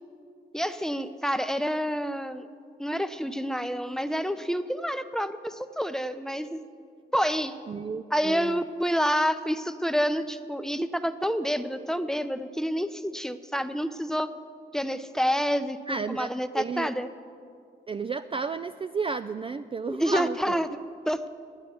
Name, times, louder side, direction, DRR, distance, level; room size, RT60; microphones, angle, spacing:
voice 1, 0.5-2.5 2.8-6.6 7.1-7.5 8.1-14.3 14.7-17.1 19.9-20.7 21.1-21.3, equal, 5° left, 10 dB, 0.6 m, -28 dB
voice 2, 7.7-8.6 15.9-16.9 17.9-20.6, right 5 dB, 30° right, 11 dB, 0.3 m, -32 dB
9.4 x 8.9 x 8.3 m, 2.3 s
supercardioid pair, 50°, 20 cm